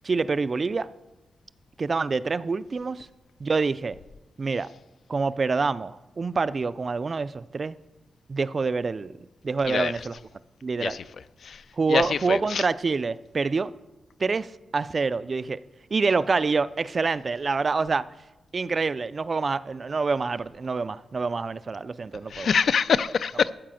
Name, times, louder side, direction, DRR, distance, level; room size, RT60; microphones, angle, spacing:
voice 1, 0.0-0.9 1.8-3.1 3.4-4.0 4.4-4.7 5.1-7.8 8.3-9.2 9.4-10.1 10.6-11.0 11.8-13.7 14.2-15.6 15.9-18.1 18.5-22.5, right 4 dB, 35° right, 16 dB, 0.3 m, -26 dB
voice 2, 11.9-12.6 22.3-23.5, left 6 dB, 60° left, 15 dB, 0.3 m, -24 dB
13.0 x 4.9 x 7.5 m, 1.1 s
wide cardioid pair, 165°, 0 cm